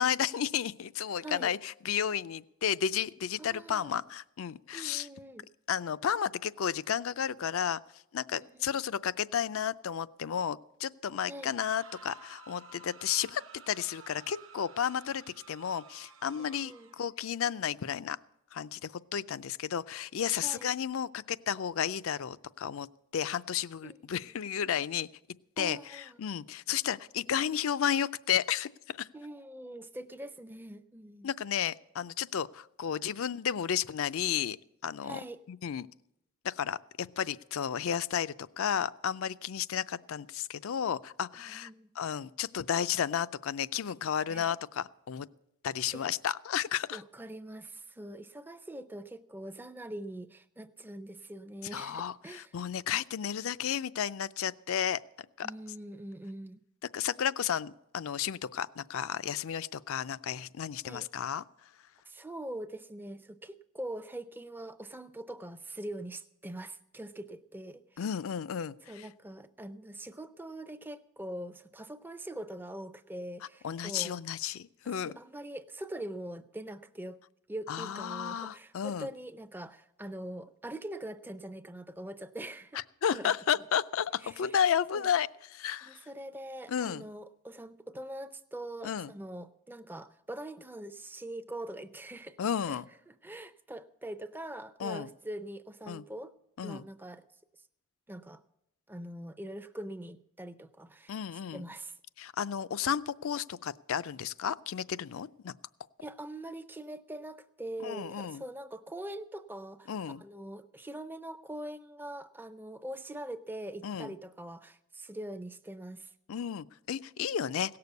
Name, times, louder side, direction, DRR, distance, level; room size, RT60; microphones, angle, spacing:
voice 1, 0.0-5.1 5.7-7.8 8.1-13.4 13.7-18.2 18.5-22.9 23.1-25.1 25.6-29.1 31.2-34.6 34.8-35.2 35.5-35.9 36.4-41.7 42.0-45.3 45.6-47.0 51.7-55.0 55.4-55.5 56.9-61.4 68.0-69.1 73.6-75.2 77.7-79.1 82.7-86.0 86.7-87.0 88.8-89.1 92.4-92.9 94.8-95.1 95.9-96.0 96.6-96.8 101.1-101.6 102.2-105.5 107.8-108.4 109.9-110.2 113.8-114.1 116.3-117.8, left 8 dB, 65° left, 16 dB, 0.4 m, -32 dB
voice 2, 3.4-4.0 4.7-5.5 8.3-8.8 11.3-11.5 16.4-16.9 20.4-20.7 23.8-24.3 25.6-26.2 29.1-31.3 35.0-35.4 41.5-41.9 44.3-44.6 45.9-46.1 46.9-52.5 55.4-56.6 60.8-61.1 62.1-68.0 68.9-74.2 74.9-77.2 77.5-82.8 83.1-83.3 84.2-84.6 84.9-85.1 85.8-92.4 92.7-92.8 93.1-96.3 96.6-97.2 98.1-98.4 98.9-101.2 101.5-102.0 106.0-116.1, right 1 dB, 10° right, 11 dB, 0.5 m, -43 dB
sound 1, 11.4-17.1, right 4 dB, 65° right, 1.1 m, -53 dB
17.0 x 6.8 x 8.1 m, 0.82 s
head